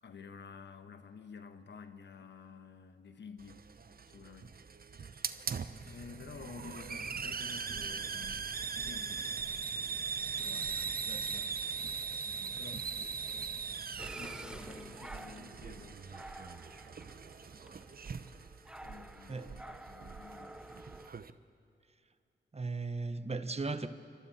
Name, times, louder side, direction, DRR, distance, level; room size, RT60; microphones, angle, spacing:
voice 1, 0.0-3.6 4.1-4.5 4.9-5.5 5.8-9.4 10.4-11.9 12.2-16.0 18.8-20.6, left 5 dB, 75° left, 1.3 m, -52 dB
Hiss, 3.4-21.3, right 5 dB, 55° right, 0.9 m, -40 dB
voice 2, 11.1-11.4 17.7-17.8 19.3-19.5 22.5-23.9, right 3 dB, 35° right, 1.2 m, -37 dB
sound 1, 14.0-21.1, right 1 dB, 5° right, 0.6 m, -51 dB
27.5 x 25.0 x 4.4 m
cardioid pair, 50°, 19 cm